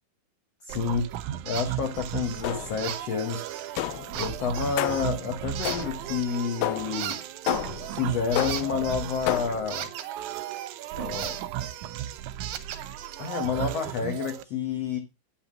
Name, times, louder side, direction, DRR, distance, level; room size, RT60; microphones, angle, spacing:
voice 1, 0.6-1.1 1.4-7.2 7.9-9.9 10.9-11.4 13.2-15.0, left 6 dB, 60° left, 5 dB, 1.8 m, -29 dB
sound 1, 0.7-14.4, right 12 dB, 90° right, 1.7 m, -36 dB
sound 2, 1.5-1.7 1.9-2.4 2.8-3.7 4.1-5.1 5.6-6.7 6.9-10.7 11.1-13.5, right 11 dB, 70° right, 2.3 m, -38 dB
sound 3, 2.4-2.9 3.8-4.2 4.8-5.2 5.6-6.1 6.6-7.0 7.5-7.9 8.4-8.8 9.3-9.7, left 16 dB, 85° left, 2.5 m, -31 dB
9.0 x 5.8 x 6.0 m, 0.27 s
omnidirectional pair, 4.4 m